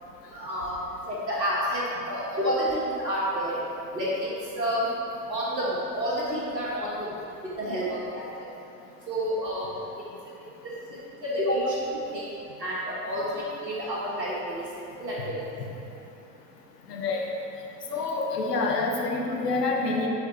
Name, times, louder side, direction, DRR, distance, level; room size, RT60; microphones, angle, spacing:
voice 1, 0.3-0.8 1.1-3.6 3.9-4.9 5.3-8.2 9.1-9.8 10.9-12.2 12.6-15.3, equal, 75° right, -8 dB, 1.6 m, -29 dB
voice 2, 16.9-17.3 17.9-20.1, left 3 dB, 70° left, 0 dB, 1.1 m, -27 dB
9.9 x 3.6 x 4.2 m, 2.7 s
figure-of-eight pair, 85°, 50 cm